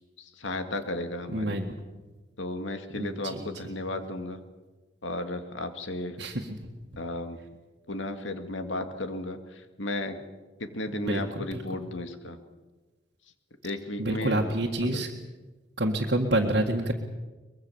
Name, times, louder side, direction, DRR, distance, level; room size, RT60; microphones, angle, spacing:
voice 1, 0.2-1.6 2.4-4.4 5.0-6.2 7.0-7.4 7.9-10.2 10.6-12.4 13.6-14.5 14.8-15.0, left 2 dB, 90° left, 7 dB, 2.2 m, -34 dB
voice 2, 1.3-1.7 2.9-3.5 6.2-6.5 10.9-11.6 14.0-15.1 15.8-16.9, right 1 dB, 60° right, -2 dB, 1.9 m, -28 dB
23.5 x 21.5 x 7.2 m, 1.2 s
head